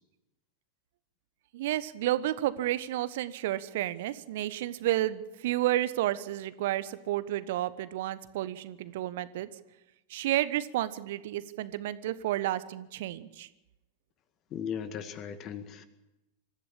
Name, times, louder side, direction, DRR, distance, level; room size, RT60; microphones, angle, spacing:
voice 1, 1.5-9.5 10.1-13.5, right 14 dB, 55° right, 15 dB, 1.1 m, -31 dB
voice 2, 14.5-15.8, left 8 dB, 35° left, 11 dB, 2.0 m, -37 dB
26.0 x 14.5 x 8.8 m, 0.97 s
figure-of-eight pair, 90°, 0 cm